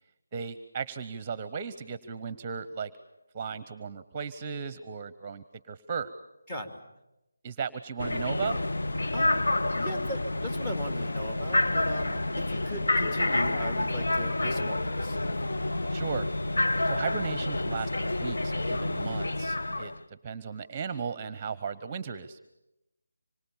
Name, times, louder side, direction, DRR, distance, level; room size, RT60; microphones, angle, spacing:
voice 1, 0.3-2.9 3.3-6.1 7.4-8.6 15.9-16.3 16.8-22.4, right 6 dB, 20° right, 15 dB, 0.9 m, -36 dB
voice 2, 6.5-6.8 9.1-9.4 9.7-15.2, equal, 20° left, 7 dB, 2.7 m, -37 dB
sound 1, 8.0-20.0, left 2 dB, 65° left, 1.1 m, -29 dB
26.0 x 24.5 x 7.2 m, 0.93 s
figure-of-eight pair, 160°, 0 cm